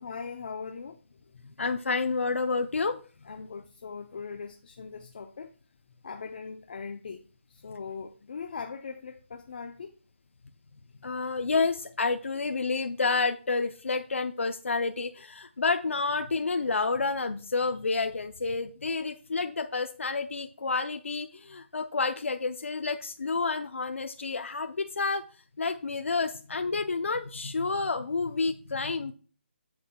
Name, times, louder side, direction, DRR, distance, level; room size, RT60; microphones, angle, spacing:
voice 1, 0.0-1.5 3.2-5.5 6.0-9.9, left 5 dB, 45° left, 0.7 m, -40 dB
voice 2, 1.6-3.0 11.0-25.2 25.6-29.1, left 4 dB, 90° left, 0.6 m, -29 dB
9.6 x 7.6 x 2.3 m
hypercardioid pair, 170°, 7 cm